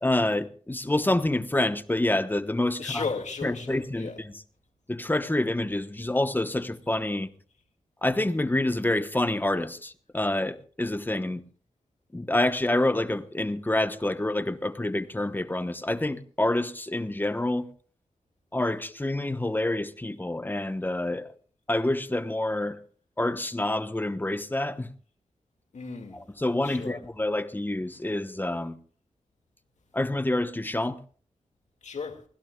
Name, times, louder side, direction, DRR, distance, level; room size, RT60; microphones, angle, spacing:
voice 1, 0.0-3.0 3.4-4.3 4.9-7.3 8.0-11.4 12.1-17.7 18.5-21.3 21.7-22.8 23.2-24.9 26.1-28.8 29.9-31.0, left 1 dB, 15° left, 1.0 m, -27 dB
voice 2, 2.8-4.2 25.7-26.2 26.6-27.0 31.8-32.2, left 5 dB, 75° left, 2.2 m, -35 dB
24.0 x 16.0 x 2.3 m
wide cardioid pair, 75°, 12 cm